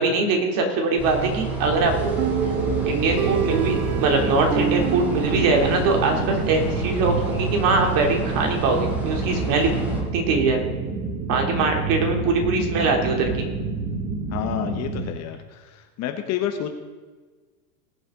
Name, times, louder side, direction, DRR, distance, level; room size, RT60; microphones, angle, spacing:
voice 1, 0.0-2.1 2.9-3.7 4.0-9.7 10.1-10.6 11.3-13.5, right 3 dB, 40° right, 2 dB, 3.0 m, -22 dB
sound 1, 1.0-10.0, right 3 dB, 5° right, 3.1 m, -30 dB
sound 2, 1.6-15.1, right 3 dB, 25° right, 1.6 m, -28 dB
sound 3, 2.2-6.8, right 12 dB, 70° right, 0.9 m, -29 dB
voice 2, 14.3-16.7, left 10 dB, 30° left, 6 dB, 1.1 m, -29 dB
20.0 x 7.8 x 3.8 m, 1.4 s
hypercardioid pair, 125°, 50 cm